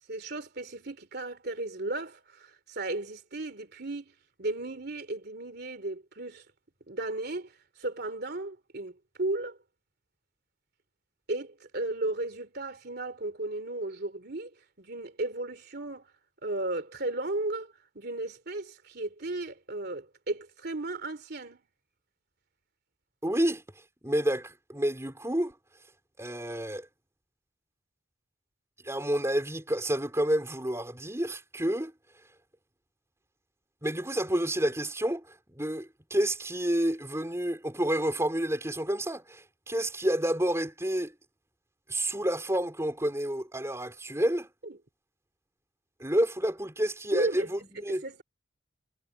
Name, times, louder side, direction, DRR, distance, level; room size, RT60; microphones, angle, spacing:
voice 1, 0.1-4.1 4.4-6.4 6.9-9.6 11.3-14.5 14.8-16.0 16.4-21.6 44.6-44.8 47.1-47.5 48.0-48.2, right 2 dB, 55° right, 3.0 m, -35 dB
voice 2, 23.2-23.6 24.0-25.5 26.2-26.9 28.8-31.9 33.8-35.2 35.5-41.1 41.9-44.5 46.0-48.0, right 1 dB, 15° right, 4.2 m, -29 dB
head